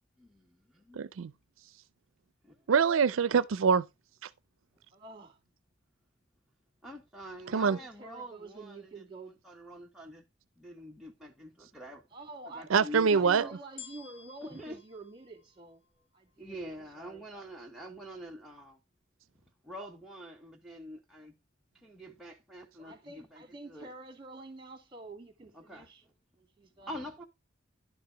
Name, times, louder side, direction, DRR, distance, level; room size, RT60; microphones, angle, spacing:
voice 1, 0.2-1.0 2.4-2.6 6.8-9.1 9.4-10.2 10.6-12.0 12.5-13.5 14.4-14.8 16.4-18.8 19.6-21.3 21.8-23.9 25.5-25.9 26.8-27.2, equal, ahead, 0.9 m, -45 dB
voice 2, 1.0-1.3 2.7-3.8 7.5-7.8 12.7-13.4, right 6 dB, 75° right, 0.4 m, -24 dB
voice 3, 4.9-5.4 7.4-9.3 12.1-12.7 13.1-15.8 16.1-16.6 17.0-17.2 22.8-26.0 26.4-26.9, right 2 dB, 25° right, 2.4 m, -48 dB
sound 1, 13.8-16.2 16.8-16.9, left 7 dB, 60° left, 1.8 m, -52 dB
11.0 x 4.7 x 4.8 m
head